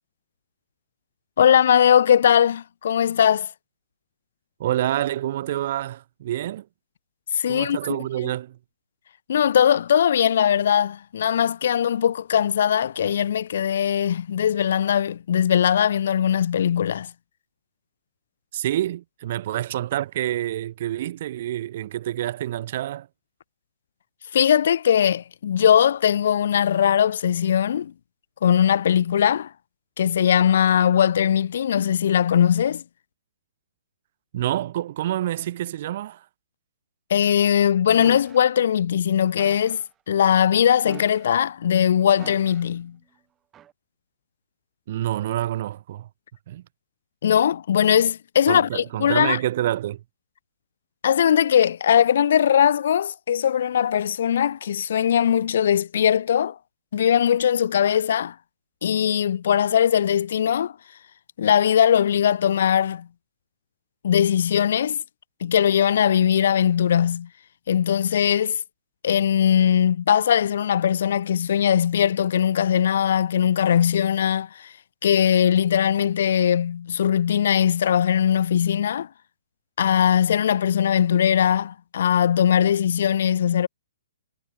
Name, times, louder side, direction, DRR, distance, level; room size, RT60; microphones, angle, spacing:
voice 1, 1.4-3.5 7.3-8.0 9.3-17.1 24.3-27.9 28.4-29.5 30.0-32.8 37.1-39.8 40.1-43.0 47.2-49.4 51.0-56.6 56.9-58.3 58.8-60.7 61.4-63.1 64.0-65.0 65.4-67.3 67.7-68.6 69.0-74.7 75.0-79.1 79.8-83.7, left 9 dB, 60° left, 0.5 m, -20 dB
voice 2, 4.6-6.6 7.5-8.6 18.5-23.1 34.3-36.2 44.9-46.1 46.5-46.6 48.5-50.0, right 13 dB, 50° right, 3.2 m, -27 dB
sound 1, 38.0-38.5 39.4-39.9 40.8-41.5 42.2-42.8 43.5-43.7, right 10 dB, 15° right, 3.1 m, -43 dB
hypercardioid pair, 150°, 0 cm